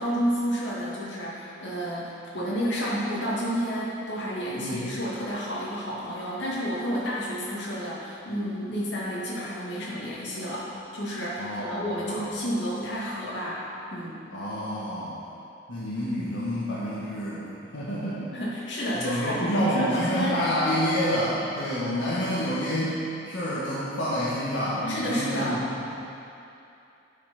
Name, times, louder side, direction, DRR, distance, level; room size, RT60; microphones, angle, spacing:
voice 1, 0.0-14.2 18.3-20.4 24.9-25.6, equal, 65° left, -7 dB, 2.4 m, -30 dB
voice 2, 11.4-12.2 14.3-15.2 15.7-17.5 17.7-18.4 19.0-25.9, equal, 85° left, -9 dB, 1.7 m, -28 dB
9.8 x 6.0 x 6.0 m, 2.7 s
head